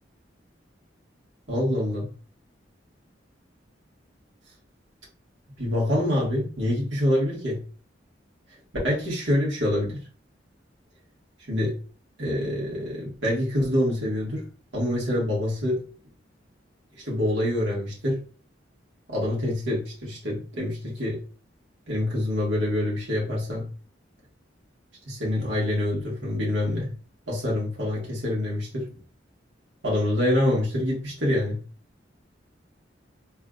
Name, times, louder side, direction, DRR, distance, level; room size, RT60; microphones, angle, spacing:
voice 1, 1.5-2.1 5.6-7.6 8.8-10.0 11.5-11.8 12.2-14.4 14.7-15.8 17.0-18.2 19.1-21.2 21.9-23.6 25.0-26.9 27.3-28.9 29.8-31.6, left 1 dB, 80° right, -4 dB, 1.8 m, -26 dB
3.4 x 3.3 x 2.5 m, 0.38 s
head